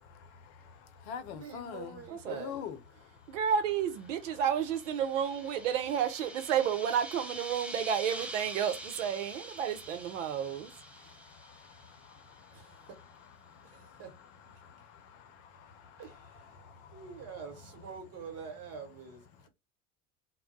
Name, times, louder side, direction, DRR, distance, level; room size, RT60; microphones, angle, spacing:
voice 1, 0.0-2.0 2.3-3.4 10.2-10.4 10.9-17.4, left 8 dB, 55° left, 0.7 m, -47 dB
voice 2, 1.3-2.6 12.5-13.0 13.6-14.1 16.0-16.6 16.9-19.5, right 6 dB, 40° right, 1.1 m, -46 dB
voice 3, 2.1-2.5 3.3-10.7, right 8 dB, 70° right, 0.7 m, -31 dB
sound 1, 4.0-12.3, right 1 dB, 5° right, 0.4 m, -46 dB
2.2 x 2.0 x 3.7 m
hypercardioid pair, 80°, 39 cm